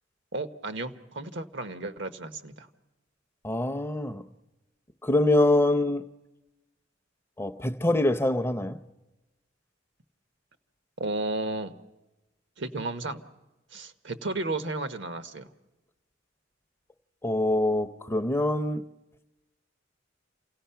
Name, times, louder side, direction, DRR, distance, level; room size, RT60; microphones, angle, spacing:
voice 1, 0.3-2.7 11.0-11.7 12.6-13.2 13.7-15.5, right 2 dB, 65° right, 1.1 m, -33 dB
voice 2, 3.4-4.2 5.0-6.0 7.4-8.8 17.2-18.8, left 1 dB, 15° left, 0.6 m, -24 dB
28.5 x 17.0 x 5.7 m
head